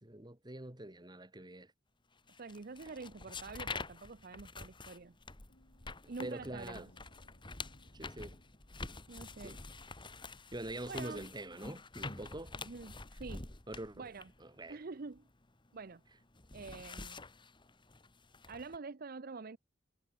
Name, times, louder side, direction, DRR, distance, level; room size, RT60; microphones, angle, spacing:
voice 1, 0.0-1.7 6.2-6.9 7.9-8.4 9.4-9.6 10.5-12.5 13.7-14.1 14.4-14.8, right 1 dB, 25° right, 2.5 m, -44 dB
sound 1, 2.3-15.8 16.1-18.8, left 3 dB, 25° left, 1.9 m, -47 dB
voice 2, 2.4-5.2 6.1-6.9 9.1-9.6 10.9-11.3 12.5-13.5 14.0-14.3 14.7-15.2 15.7-16.0 16.5-17.2 18.5-19.6, right 4 dB, 50° right, 0.7 m, -46 dB
sound 2, 5.3-10.3, left 1 dB, 70° left, 5.3 m, -64 dB
head